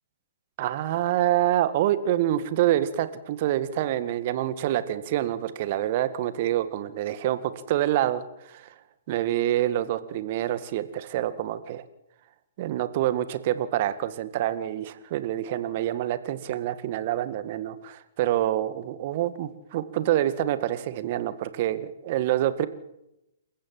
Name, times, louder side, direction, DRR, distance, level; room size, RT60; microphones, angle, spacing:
voice 1, 0.6-8.7 9.1-11.8 12.6-22.7, right 12 dB, 40° right, 13 dB, 1.9 m, -26 dB
28.5 x 15.5 x 7.8 m, 0.87 s
figure-of-eight pair, 120°, 0 cm